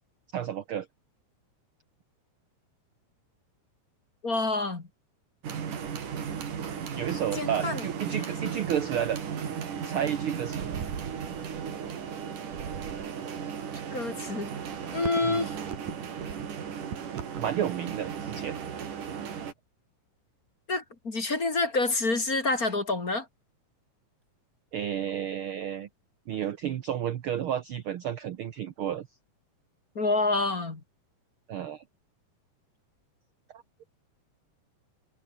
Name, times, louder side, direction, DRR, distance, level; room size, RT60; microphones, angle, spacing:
voice 1, 0.3-0.9 7.0-9.2 9.8-10.7 15.2-15.5 17.1-18.6 24.7-25.9 26.3-29.1 31.5-31.8 33.5-33.6, right 9 dB, 65° right, 1.4 m, -31 dB
voice 2, 4.2-4.8 7.3-7.8 8.2-8.3 13.9-14.5 14.9-15.5 20.7-23.3 29.9-30.8, left 3 dB, 30° left, 2.9 m, -28 dB
sound 1, 5.4-19.5, right 7 dB, 80° right, 4.5 m, -35 dB
omnidirectional pair, 3.6 m